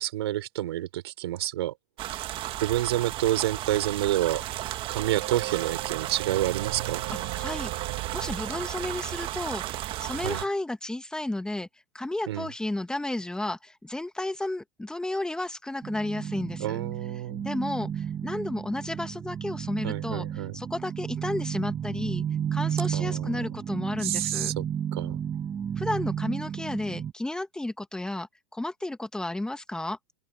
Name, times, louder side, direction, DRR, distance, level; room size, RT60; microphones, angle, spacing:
voice 1, 0.0-1.7 2.1-2.2 2.6-4.4 4.9-7.0 10.2-10.4 12.3-12.5 16.6-17.5 19.8-20.6 22.9-23.4 24.0-24.6 24.9-25.2, right 14 dB, 85° right, 4.9 m, -29 dB
sound 1, 2.0-10.5, right 14 dB, 40° right, 1.7 m, -34 dB
sound 2, 4.9-9.5, right 19 dB, 65° right, 2.4 m, -38 dB
voice 2, 7.4-7.7 8.1-11.7 11.9-16.8 17.4-20.3 20.5-22.2 22.5-24.5 25.8-30.0, left 1 dB, 5° left, 1.6 m, -32 dB
sound 3, 15.8-27.1, right 8 dB, 20° right, 2.0 m, -33 dB
open air
supercardioid pair, 120°, 13 cm